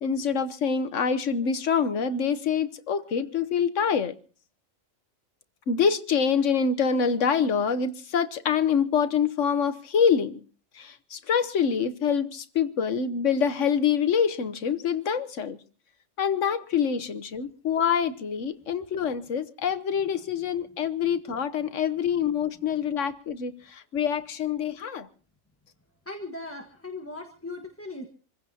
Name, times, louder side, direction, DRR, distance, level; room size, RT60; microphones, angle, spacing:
voice 1, 0.0-4.1 5.7-10.4 10.8-15.6 16.2-25.1, left 6 dB, 65° left, 1.3 m, -26 dB
voice 2, 26.0-28.1, left 2 dB, 10° left, 1.4 m, -38 dB
27.5 x 16.0 x 2.8 m
omnidirectional pair, 1.4 m